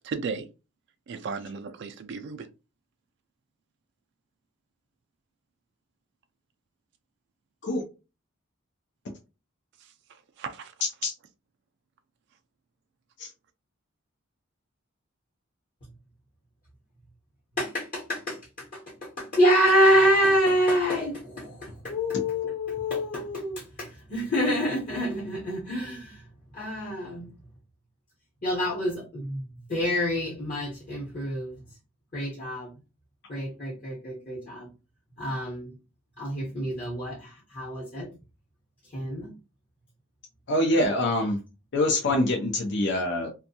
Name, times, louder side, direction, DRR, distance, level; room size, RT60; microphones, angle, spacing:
voice 1, 0.0-0.5 1.1-2.5 10.4-10.7, right 5 dB, 60° right, 0.3 m, -34 dB
voice 2, 17.6-26.3 26.5-27.3 28.4-31.6 32.1-32.7 33.3-34.7 35.2-35.7 36.2-38.1 38.9-39.3, equal, 45° left, 1.0 m, -27 dB
voice 3, 40.5-41.4 41.7-43.3, left 1 dB, 60° left, 0.5 m, -24 dB
2.6 x 2.2 x 2.7 m
head